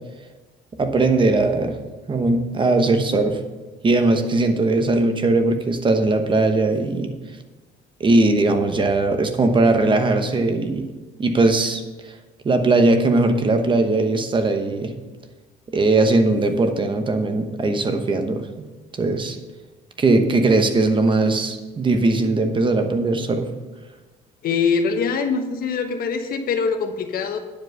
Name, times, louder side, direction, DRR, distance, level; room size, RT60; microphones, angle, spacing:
voice 1, 0.8-1.8 2.1-3.4 3.8-7.1 8.0-10.8 11.2-11.8 12.4-14.9 15.7-18.4 19.0-19.4 20.0-23.5, right 2 dB, 30° right, 6 dB, 1.0 m, -19 dB
voice 2, 24.4-27.4, left 5 dB, 60° left, 6 dB, 1.2 m, -23 dB
10.0 x 5.1 x 6.6 m, 1.2 s
cardioid pair, 110°, 17 cm